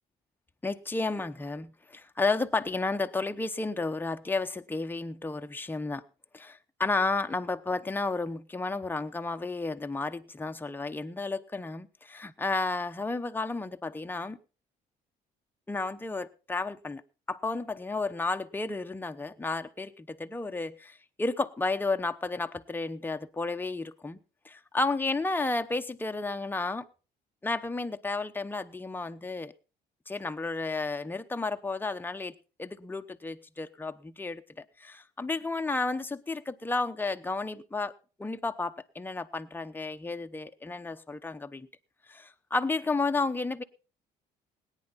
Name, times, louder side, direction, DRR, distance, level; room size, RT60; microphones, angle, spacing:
voice 1, 0.6-6.0 6.3-14.4 15.7-17.0 17.3-24.2 24.4-26.9 27.4-29.5 30.1-32.3 32.6-37.9 38.2-41.7 42.1-43.6, left 3 dB, 10° left, 8 dB, 0.9 m, -32 dB
18.0 x 10.0 x 4.2 m, 0.35 s
cardioid pair, 110°, 17 cm